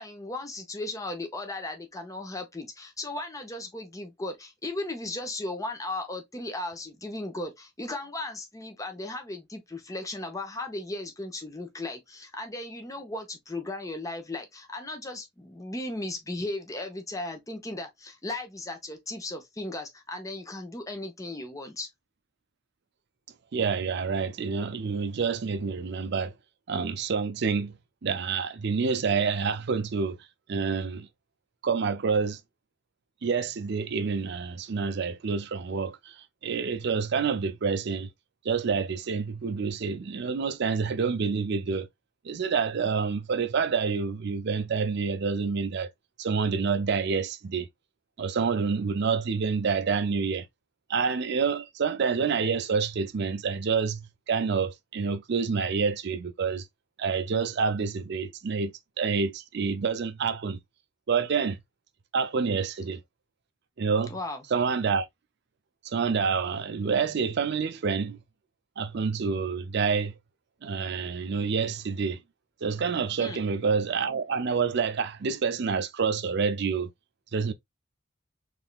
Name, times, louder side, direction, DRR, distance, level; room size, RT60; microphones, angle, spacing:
voice 1, 0.0-21.9 64.0-64.5 73.2-73.4, left 2 dB, 15° left, 0.9 m, -36 dB
voice 2, 23.5-26.3 26.7-27.7 28.0-30.2 30.5-31.1 31.6-32.4 33.2-36.2 36.4-38.1 38.4-41.9 42.2-45.9 46.2-47.7 48.2-50.5 50.9-56.6 57.0-60.6 61.1-61.6 62.1-63.0 63.8-64.1 64.5-65.1 65.8-68.2 68.8-70.1 70.6-72.2 72.6-76.9 77.3-77.5, right 5 dB, 60° right, 0.5 m, -28 dB
3.6 x 3.3 x 2.4 m
head